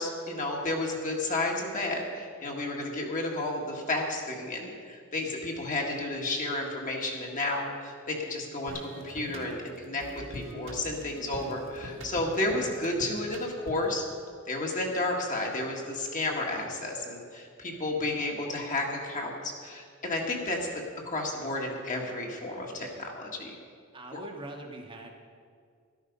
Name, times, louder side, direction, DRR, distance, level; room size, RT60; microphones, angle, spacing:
voice 1, 0.0-10.0 10.3-14.0 14.5-20.6 21.1-23.6 24.1-24.2, left 2 dB, 40° left, 0 dB, 1.9 m, -32 dB
sound 1, 8.7-14.0, right 1 dB, 60° right, 1.7 m, -44 dB
voice 2, 23.9-25.2, right 2 dB, 25° right, 1 dB, 1.2 m, -42 dB
13.0 x 12.0 x 5.4 m, 2.2 s
head